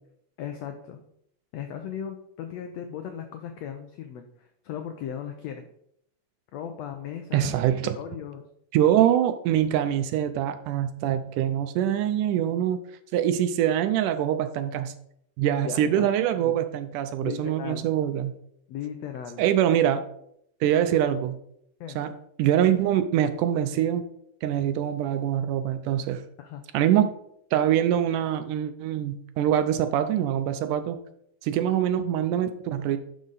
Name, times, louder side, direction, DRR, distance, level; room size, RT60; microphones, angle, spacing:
voice 1, 0.4-1.0 1.5-5.6 6.5-7.6 8.0-8.5 15.6-16.1 16.4-16.6 17.2-17.8 18.7-19.4 21.8-22.0 26.4-26.6, left 8 dB, 85° left, 6 dB, 1.5 m, -37 dB
voice 2, 7.3-8.0 8.7-12.8 13.1-14.9 15.4-18.3 19.4-20.0 20.6-21.4 22.0-22.1 22.4-24.1 24.4-26.2 26.7-27.1 27.5-31.0 31.4-33.0, right 10 dB, 80° right, 10 dB, 2.0 m, -24 dB
12.0 x 5.0 x 4.0 m, 0.72 s
omnidirectional pair, 3.9 m